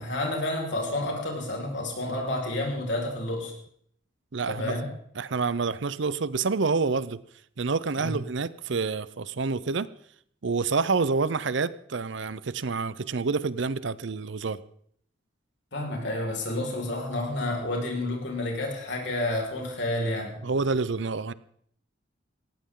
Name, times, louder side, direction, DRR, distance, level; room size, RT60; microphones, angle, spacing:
voice 1, 0.0-3.5 4.5-4.9 8.0-8.1 15.7-20.4, left 1 dB, 60° left, 0 dB, 5.2 m, -30 dB
voice 2, 4.3-4.8 5.2-7.2 7.6-9.9 10.4-14.6 20.4-21.3, right 4 dB, 65° right, 17 dB, 0.6 m, -28 dB
19.0 x 17.0 x 3.8 m, 0.65 s
head